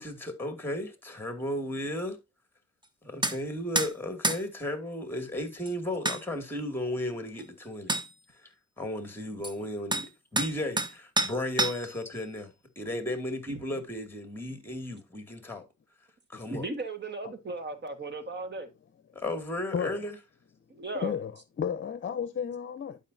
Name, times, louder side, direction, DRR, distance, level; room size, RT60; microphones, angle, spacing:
voice 1, 0.0-2.2 3.0-7.9 8.3-15.6 16.3-16.7 19.1-20.1, left 1 dB, 5° left, 2.3 m, -35 dB
sound 1, 3.2-3.4 3.8-3.9 4.2-4.4 5.7-5.8 6.1-6.2 7.4-7.5 7.9-8.1 9.4-9.5 9.9-10.1 10.4-10.9 11.2-12.0, right 2 dB, 15° right, 1.0 m, -28 dB
voice 2, 16.5-18.7 20.7-21.1, right 2 dB, 35° right, 1.6 m, -36 dB
voice 3, 20.9-23.0, left 7 dB, 40° left, 0.8 m, -33 dB
11.5 x 5.0 x 2.7 m
cardioid pair, 90°, 30 cm